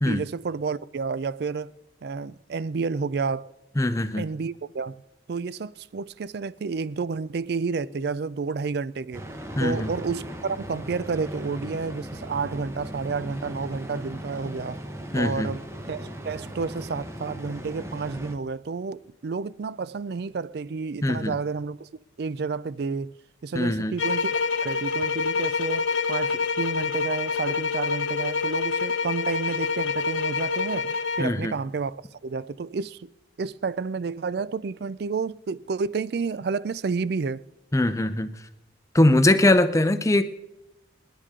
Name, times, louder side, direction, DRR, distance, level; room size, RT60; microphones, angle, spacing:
voice 1, 0.1-1.7 2.0-3.5 4.2-5.0 5.3-9.2 9.6-14.8 15.1-15.6 15.9-21.9 22.2-23.1 23.4-24.3 24.6-33.1 33.4-37.4, right 4 dB, 55° right, 0.4 m, -30 dB
voice 2, 3.8-4.2 9.6-9.9 15.1-15.5 21.0-21.3 23.5-23.9 31.2-31.5 37.7-38.3 38.9-40.2, left 1 dB, 15° left, 0.6 m, -21 dB
sound 1, 9.1-18.3, equal, 15° right, 0.9 m, -38 dB
sound 2, 24.0-31.3, left 5 dB, 80° left, 0.8 m, -27 dB
26.5 x 10.0 x 3.7 m
head